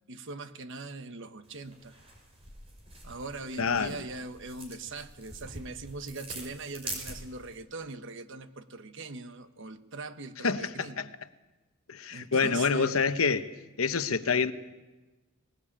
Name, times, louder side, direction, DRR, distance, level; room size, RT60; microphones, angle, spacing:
voice 1, 0.1-2.0 3.0-11.1 12.1-13.0, right 3 dB, 65° right, 1.2 m, -41 dB
sound 1, 1.4-7.6, right 2 dB, 30° right, 5.7 m, -45 dB
voice 2, 3.6-4.0 10.4-11.0 11.9-13.5 13.8-14.5, left 5 dB, 90° left, 1.0 m, -27 dB
19.5 x 19.5 x 8.7 m
head